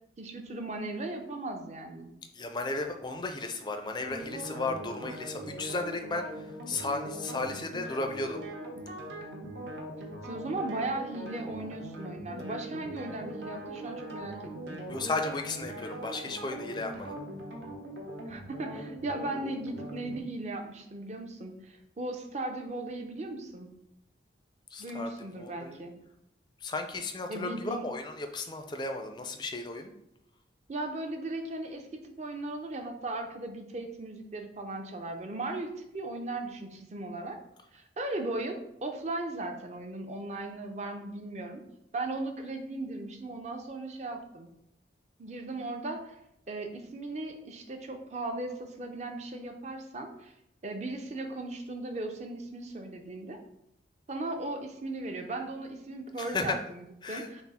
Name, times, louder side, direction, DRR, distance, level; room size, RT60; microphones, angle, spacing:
voice 1, 0.2-2.1 10.2-14.8 18.3-23.7 24.8-25.9 27.3-27.8 30.7-31.9 32.2-37.4 37.7-41.6 41.9-44.5 45.2-46.2 46.5-50.3 50.6-53.4 54.1-57.4, right 2 dB, 35° right, 5 dB, 0.5 m, -37 dB
voice 2, 2.3-8.4 14.9-17.2 24.7-25.1 25.4-25.8 26.6-29.9 56.2-56.6 57.0-57.3, left 3 dB, 25° left, 5 dB, 0.4 m, -34 dB
sound 1, 4.0-20.2, right 1 dB, 70° right, 0.9 m, -41 dB
6.0 x 2.0 x 4.1 m, 0.81 s
head